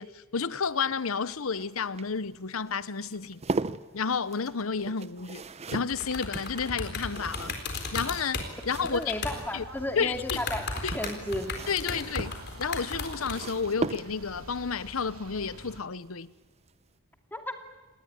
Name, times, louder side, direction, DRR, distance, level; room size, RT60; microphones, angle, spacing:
voice 1, 0.0-3.4 3.9-5.4 5.7-7.5 7.9-9.1 9.5-9.6 9.9-10.5 10.8-11.0 11.7-16.3, left 5 dB, 80° left, 0.9 m, -31 dB
sound 1, 0.6-9.4 10.6-14.5 16.1-16.4 16.7-16.8, right 3 dB, 30° right, 0.7 m, -39 dB
sound 2, 5.9-9.4 9.8-9.9 10.2-13.4, left 4 dB, 55° left, 4.1 m, -35 dB
sound 3, 8.5-15.8, right 1 dB, 85° right, 2.8 m, -48 dB
voice 2, 8.8-10.6 10.9-11.5 17.3-17.5, left 1 dB, 10° left, 2.6 m, -33 dB
28.0 x 19.5 x 9.6 m
head